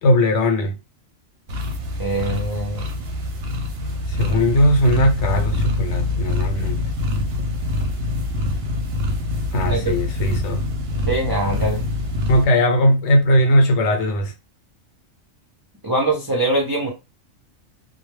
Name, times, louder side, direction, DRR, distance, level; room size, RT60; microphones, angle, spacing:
voice 1, 0.0-0.7 4.1-6.8 9.5-10.6 12.3-14.3, equal, 65° left, 0.9 m, -18 dB
sound 1, 1.5-12.4, left 2 dB, 60° right, 0.7 m, -24 dB
voice 2, 2.0-2.8 9.7-9.9 11.1-11.8 15.8-16.9, right 2 dB, 40° right, 0.3 m, -22 dB
2.2 x 2.1 x 3.1 m
omnidirectional pair, 1.3 m